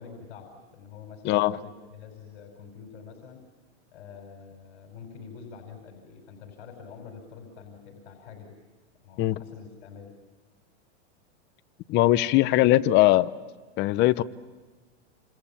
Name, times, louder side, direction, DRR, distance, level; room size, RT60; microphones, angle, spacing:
voice 1, 0.0-3.4 3.9-8.6 9.0-10.1 12.2-12.4, left 6 dB, 60° left, 3 dB, 5.2 m, -46 dB
voice 2, 1.2-1.6 9.2-9.4 11.9-13.3 13.8-14.2, left 16 dB, 30° left, 14 dB, 0.8 m, -20 dB
28.5 x 27.0 x 7.2 m, 1.4 s
supercardioid pair, 145°, 35 cm